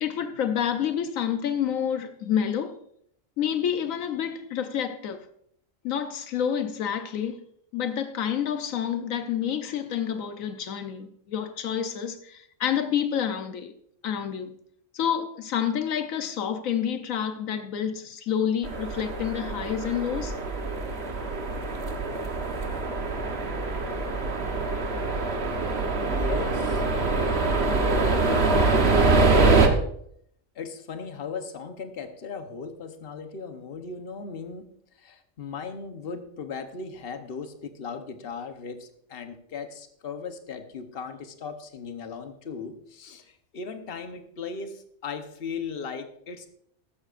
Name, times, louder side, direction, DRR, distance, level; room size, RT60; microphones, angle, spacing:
voice 1, 0.0-2.8 3.4-5.2 5.8-7.4 7.7-13.7 14.0-14.5 14.9-20.4, left 8 dB, 80° left, 1.2 m, -28 dB
Binaural Train Passing By, 18.6-29.7, right 3 dB, 50° right, 1.4 m, -24 dB
voice 2, 25.7-26.8 28.0-28.8 30.5-34.7 35.0-46.5, left 5 dB, 50° left, 1.2 m, -37 dB
14.5 x 13.0 x 2.5 m
omnidirectional pair, 1.4 m